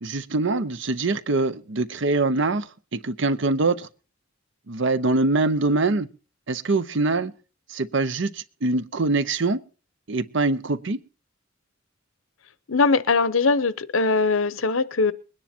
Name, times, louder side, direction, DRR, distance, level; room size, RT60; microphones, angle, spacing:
voice 1, 0.0-3.9 4.7-6.1 6.5-7.3 7.7-9.6 10.1-11.0, right 3 dB, 65° right, 15 dB, 0.8 m, -24 dB
voice 2, 12.7-15.1, left 4 dB, 85° left, 17 dB, 0.9 m, -21 dB
21.0 x 9.9 x 4.4 m, 0.36 s
head